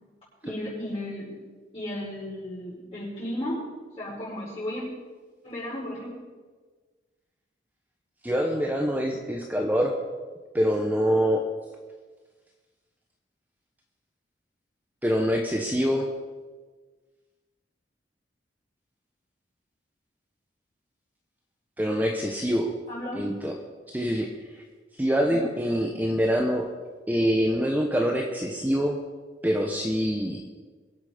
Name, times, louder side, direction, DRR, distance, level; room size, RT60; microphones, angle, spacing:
voice 1, 0.4-1.4 1.7-3.6 4.0-4.9 5.4-6.1 22.9-23.3 25.3-25.4, left 1 dB, 30° left, -12 dB, 5.9 m, -34 dB
voice 2, 8.2-10.0 10.5-11.4 15.0-16.1 21.8-22.7 23.2-23.5 23.9-24.6 25.0-26.7 27.1-29.0 29.4-30.4, equal, 10° right, 2 dB, 1.0 m, -25 dB
23.0 x 8.2 x 5.1 m, 1.4 s
head